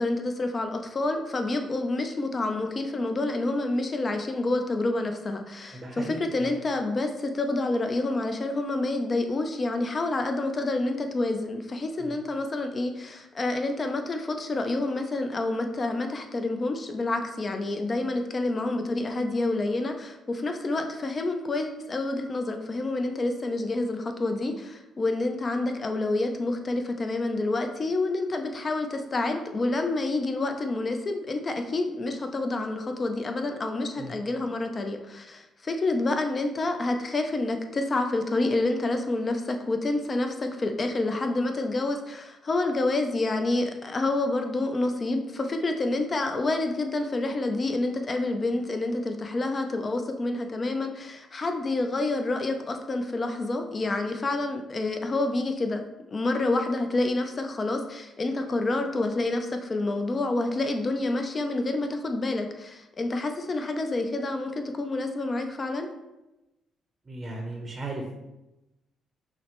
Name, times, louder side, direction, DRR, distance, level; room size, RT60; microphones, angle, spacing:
voice 1, 0.0-65.9, left 2 dB, 35° left, 5 dB, 0.5 m, -28 dB
voice 2, 5.7-6.5 12.0-12.2 34.0-34.1 67.1-68.1, right 2 dB, 30° right, 0 dB, 0.7 m, -36 dB
5.5 x 2.1 x 3.0 m, 0.97 s
cardioid pair, 90°, 0 cm